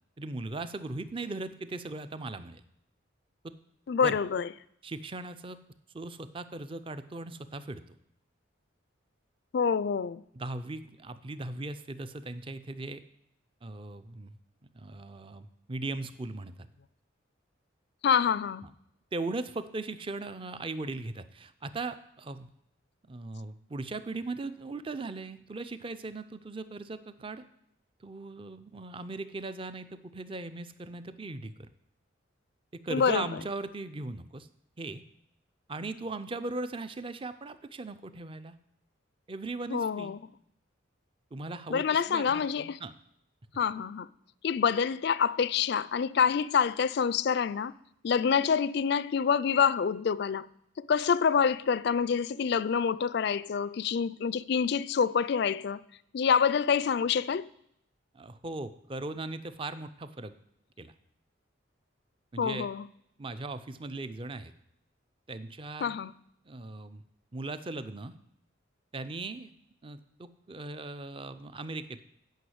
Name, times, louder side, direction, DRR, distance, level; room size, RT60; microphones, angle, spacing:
voice 1, 0.2-2.6 3.4-3.5 4.0-4.2 4.8-5.6 5.9-7.8 10.3-13.0 13.6-14.4 14.7-16.5 19.1-22.5 23.1-27.4 28.0-31.7 32.7-34.5 34.8-35.0 35.7-38.6 39.3-40.1 41.3-42.4 42.8-42.9 58.1-60.3 60.8-60.9 62.3-62.7 63.2-64.5 65.3-65.9 66.5-67.0 67.3-68.1 68.9-69.5 69.8-72.0, right 2 dB, 25° right, 0.5 m, -38 dB
voice 2, 3.9-4.5 9.5-10.2 18.0-18.7 32.9-33.3 39.7-40.2 41.7-42.8 43.6-44.1 44.4-47.7 48.0-50.5 50.8-55.8 56.1-57.5 62.4-62.9 65.8-66.1, left 6 dB, 55° left, 0.3 m, -27 dB
9.2 x 5.6 x 7.8 m
head